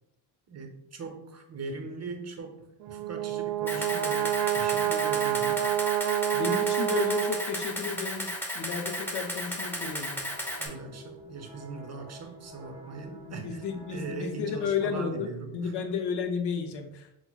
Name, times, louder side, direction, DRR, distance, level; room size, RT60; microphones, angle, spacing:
voice 1, 0.5-5.6 10.6-15.7, right 4 dB, 35° right, 4 dB, 0.8 m, -40 dB
Brass instrument, 2.8-7.9, right 12 dB, 70° right, 0.5 m, -28 dB
Camera, 3.7-10.7, left 1 dB, 5° left, 0.8 m, -34 dB
voice 2, 6.3-8.3 8.5-10.2 13.3-17.1, left 6 dB, 65° left, 6 dB, 0.7 m, -32 dB
sound 1, 9.8-14.7, equal, 10° right, 1.1 m, -50 dB
5.7 x 2.1 x 2.3 m, 0.84 s
supercardioid pair, 70°, 44 cm